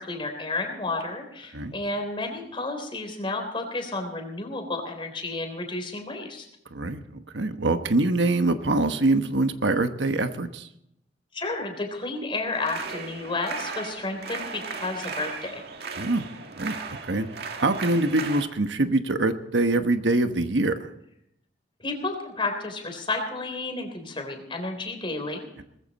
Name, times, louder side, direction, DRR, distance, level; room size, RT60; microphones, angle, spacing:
voice 1, 0.0-6.5 11.3-15.6 21.8-25.6, left 2 dB, 30° left, 4 dB, 3.6 m, -31 dB
voice 2, 6.7-10.7 16.0-16.3 16.6-17.3 17.6-20.9, right 2 dB, 80° right, 8 dB, 1.2 m, -24 dB
sound 1, 12.5-18.5, right 4 dB, 60° right, 2.0 m, -36 dB
20.0 x 15.0 x 4.2 m, 0.77 s
head